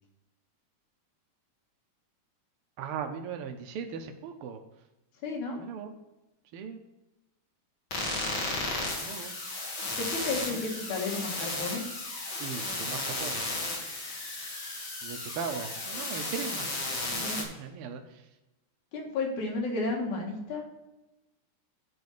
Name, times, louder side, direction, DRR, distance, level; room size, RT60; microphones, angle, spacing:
voice 1, 2.8-4.6 5.6-5.9 6.5-6.8 9.0-9.3 12.4-13.4 15.0-16.7 17.1-18.0, right 6 dB, 90° right, 5 dB, 1.2 m, -38 dB
voice 2, 5.2-5.6 10.0-11.8 17.1-17.4 18.9-20.7, left 3 dB, 75° left, 0 dB, 3.0 m, -32 dB
sound 1, 7.9-17.4, left 2 dB, 40° left, 2.6 m, -34 dB
9.4 x 4.3 x 6.6 m, 0.99 s
omnidirectional pair, 3.5 m